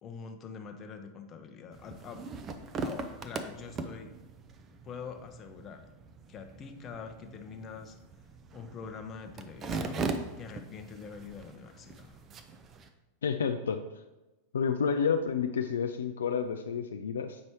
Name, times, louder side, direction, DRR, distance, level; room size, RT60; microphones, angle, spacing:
voice 1, 0.0-2.3 2.8-4.1 4.8-5.9 6.3-8.0 8.5-10.1 10.4-12.2, left 6 dB, 30° left, 5 dB, 0.7 m, -44 dB
sound 1, 1.7-12.9, right 4 dB, 25° right, 0.5 m, -40 dB
voice 2, 13.2-13.8 14.5-17.4, left 6 dB, 65° left, 7 dB, 0.3 m, -30 dB
7.4 x 5.3 x 3.0 m, 1.1 s
figure-of-eight pair, 90°, 0 cm